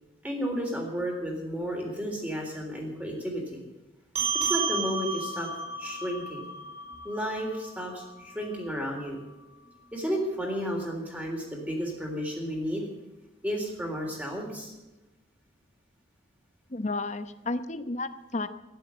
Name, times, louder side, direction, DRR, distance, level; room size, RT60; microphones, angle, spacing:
voice 1, 0.2-3.6 4.3-5.5 5.8-6.5 7.0-9.2 9.9-12.8 13.4-14.7, equal, 10° right, 0 dB, 3.6 m, -32 dB
sound 1, 4.2-8.9, right 4 dB, 35° right, 5.6 m, -33 dB
voice 2, 16.7-18.5, left 2 dB, 35° left, 12 dB, 0.9 m, -32 dB
12.5 x 10.5 x 8.3 m, 1.0 s
head